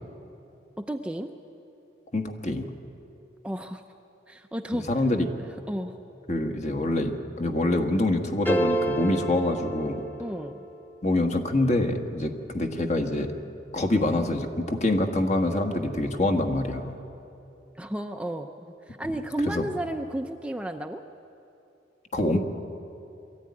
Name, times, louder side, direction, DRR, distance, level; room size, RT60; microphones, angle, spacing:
voice 1, 0.8-1.3 3.4-3.8 4.3-4.9 5.7-5.9 10.2-10.6 17.8-21.0, right 1 dB, 5° right, 5 dB, 0.6 m, -32 dB
voice 2, 2.1-2.7 4.7-5.3 6.3-10.0 11.0-13.3 13.7-16.9 19.5-19.6 22.1-22.4, left 1 dB, 40° left, 5 dB, 1.6 m, -25 dB
sound 1, 8.5-10.7, right 1 dB, 10° left, 1.2 m, -29 dB
23.0 x 14.5 x 9.7 m, 2.8 s
head